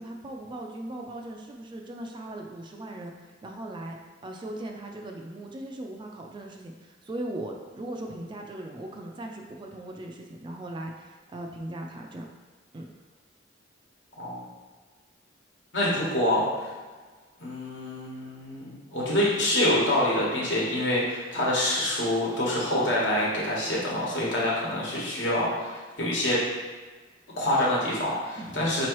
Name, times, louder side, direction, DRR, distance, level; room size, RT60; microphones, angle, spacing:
voice 1, 0.0-3.1 3.4-4.0 4.2-12.3 12.7-12.9 15.8-16.0 28.4-28.7, right 1 dB, 25° right, 2 dB, 0.3 m, -38 dB
voice 2, 15.7-16.7 17.4-26.4 27.4-28.9, left 1 dB, 70° left, -5 dB, 1.2 m, -26 dB
4.5 x 3.0 x 3.0 m, 1.4 s
head